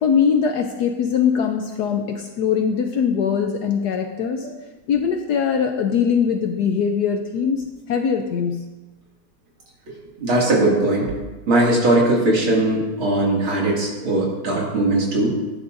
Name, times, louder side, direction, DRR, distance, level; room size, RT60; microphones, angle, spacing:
voice 1, 0.0-4.5 4.9-8.6, left 7 dB, 70° left, 4 dB, 1.0 m, -21 dB
voice 2, 10.2-11.1 11.5-15.4, right 2 dB, 80° right, -4 dB, 3.1 m, -19 dB
12.0 x 9.7 x 2.6 m, 1.2 s
omnidirectional pair, 2.2 m